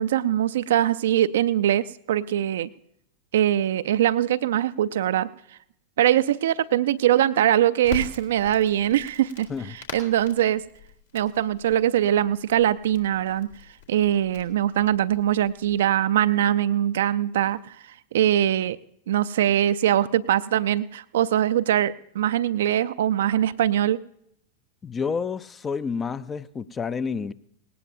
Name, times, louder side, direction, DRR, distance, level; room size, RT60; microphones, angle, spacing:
voice 1, 0.0-2.7 3.3-5.3 6.0-10.6 11.1-13.5 13.9-17.8 18.1-18.8 19.1-24.0, right 11 dB, 60° right, 14 dB, 0.4 m, -22 dB
Crackle, 7.8-15.8, left 7 dB, 70° left, 2.3 m, -43 dB
voice 2, 24.8-27.3, left 5 dB, 20° left, 16 dB, 0.5 m, -29 dB
18.5 x 18.0 x 2.7 m, 0.73 s
figure-of-eight pair, 90°, 0 cm